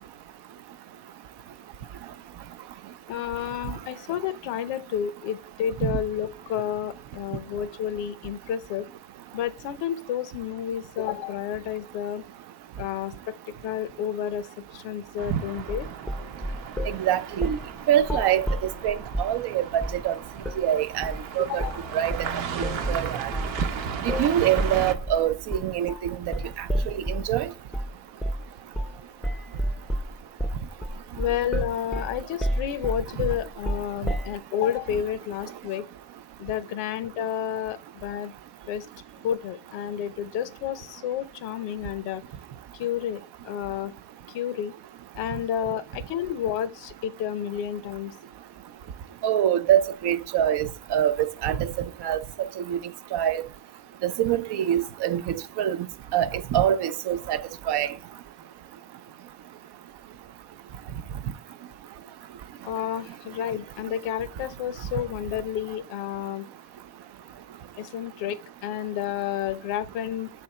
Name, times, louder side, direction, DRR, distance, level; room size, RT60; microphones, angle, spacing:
voice 1, 3.1-8.9 9.3-12.3 12.8-13.3 13.6-15.9 21.4-21.7 31.1-35.9 36.4-38.3 38.7-38.9 39.2-42.2 42.7-43.9 44.3-44.7 45.2-48.2 62.6-66.5 67.8-70.3, left 10 dB, 85° left, 0.7 m, -30 dB
sound 1, 15.2-25.0, right 7 dB, 85° right, 0.9 m, -36 dB
sound 2, 15.7-17.0 17.4-17.7 18.0-19.4 19.8-20.1 20.4-20.6 21.0-21.3 21.6-21.9 22.1-27.3 27.7-27.9 28.2-28.5 28.8-29.0 29.2-34.4, equal, ahead, 0.4 m, -30 dB
voice 2, 16.8-17.6 17.9-20.2 20.6-21.6 21.9-22.2 22.6-23.3 24.0-27.5 49.2-51.1 51.4-52.2 52.6-52.8 53.1-53.5 54.0-55.8 56.1-57.4 57.7-57.9, right 11 dB, 65° right, 0.6 m, -25 dB
6.6 x 3.4 x 4.2 m
cardioid pair, 95°, 43 cm